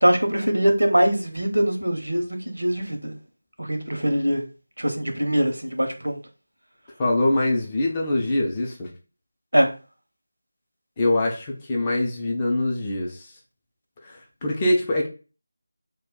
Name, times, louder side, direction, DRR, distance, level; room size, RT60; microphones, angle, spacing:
voice 1, 0.0-3.1 3.6-4.4 4.8-6.2 9.5-9.7, equal, 75° right, 0.6 m, -22 dB
voice 2, 7.0-8.9 11.0-13.2 14.0-15.1, left 1 dB, 20° left, 0.4 m, -23 dB
2.2 x 2.2 x 3.5 m
figure-of-eight pair, 165°, 0 cm